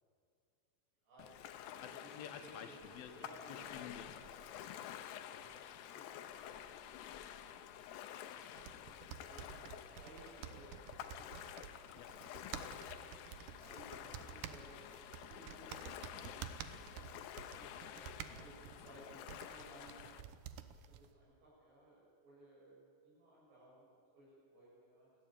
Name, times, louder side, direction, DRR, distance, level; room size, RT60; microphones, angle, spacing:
voice 1, 1.0-2.1 2.4-2.7 3.2-3.8 5.4-5.6 5.9-6.6 6.9-7.9 8.8-12.0 12.6-14.8 15.2-20.1 20.9-25.1, right 1 dB, 70° right, -6 dB, 9.3 m, -61 dB
Ocean, 1.2-20.2, left 10 dB, 90° left, 3.0 m, -50 dB
voice 2, 1.8-5.5 12.0-12.1 18.3-18.5, left 9 dB, 70° left, 7 dB, 2.7 m, -53 dB
sound 1, 2.8-9.1, equal, 30° right, 7.6 m, -67 dB
sound 2, 8.6-21.1, right 9 dB, 90° right, 1.7 m, -51 dB
29.5 x 12.0 x 9.0 m, 2.3 s
omnidirectional pair, 4.9 m